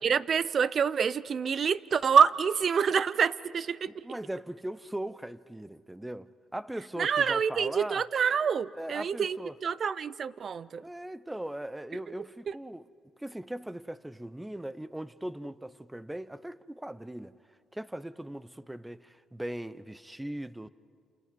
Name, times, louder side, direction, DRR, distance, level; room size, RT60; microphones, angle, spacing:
voice 1, 0.0-4.0 7.0-10.8 12.5-12.6, right 7 dB, 50° right, 0.6 m, -27 dB
voice 2, 3.9-8.0 8.8-9.5 10.8-12.9 13.2-17.3 17.7-20.7, right 1 dB, 10° right, 0.7 m, -39 dB
29.5 x 28.0 x 5.3 m
cardioid pair, 90°, 0 cm